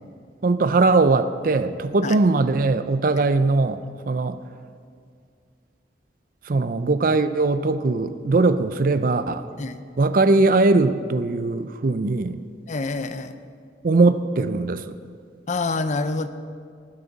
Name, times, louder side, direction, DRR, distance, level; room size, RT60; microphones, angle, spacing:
voice 1, 0.4-4.4 6.5-9.4 10.0-12.4 13.8-14.9, right 3 dB, 50° right, 12 dB, 0.5 m, -20 dB
voice 2, 12.7-13.3 15.5-16.3, left 3 dB, 45° left, 11 dB, 0.6 m, -26 dB
19.0 x 9.7 x 4.1 m, 2.2 s
head